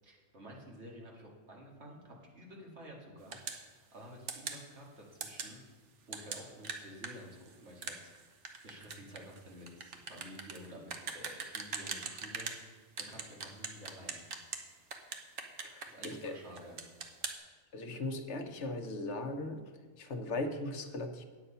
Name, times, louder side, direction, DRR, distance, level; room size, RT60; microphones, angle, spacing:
voice 1, 0.0-3.4 3.6-5.6 6.1-14.2 15.9-16.8, equal, 70° right, -2 dB, 2.3 m, -51 dB
sound 1, 3.3-3.6 4.3-4.6 5.2-5.5 6.1-12.6 13.0-14.6 14.9-16.3 16.6-17.4, right 5 dB, 90° right, 1.3 m, -41 dB
voice 2, 15.6-16.4 17.7-19.6 20.0-21.2, left 2 dB, 75° left, 6 dB, 1.2 m, -38 dB
9.5 x 7.9 x 5.5 m, 1.5 s
omnidirectional pair, 1.2 m